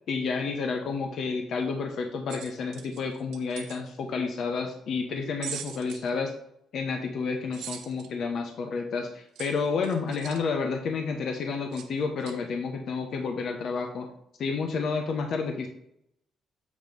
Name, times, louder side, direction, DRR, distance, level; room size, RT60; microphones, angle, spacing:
voice 1, 0.1-6.3 6.7-14.1 14.4-15.7, left 4 dB, 65° left, 4 dB, 0.8 m, -30 dB
sound 1, 2.3-3.8 5.4-6.1 7.5-8.1 9.4-10.4 11.7-11.9 12.2-12.4, right 9 dB, 85° right, 0.7 m, -41 dB
7.4 x 3.1 x 5.2 m, 0.75 s
cardioid pair, 90°, 0 cm